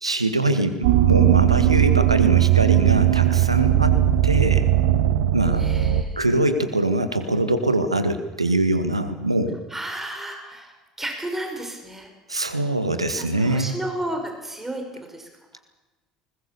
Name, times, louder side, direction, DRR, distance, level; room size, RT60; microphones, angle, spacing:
voice 1, 0.0-4.0 4.2-4.6 5.3-5.7 6.2-9.6 12.3-13.8, right 2 dB, 90° right, 9 dB, 1.6 m, -23 dB
sound 1, 0.8-6.0, right 13 dB, 65° right, 1.1 m, -18 dB
voice 2, 5.6-6.3 9.7-12.1 13.1-15.6, right 1 dB, 10° right, 3 dB, 5.5 m, -33 dB
20.5 x 20.5 x 6.9 m, 1.1 s
figure-of-eight pair, 60°, 3 cm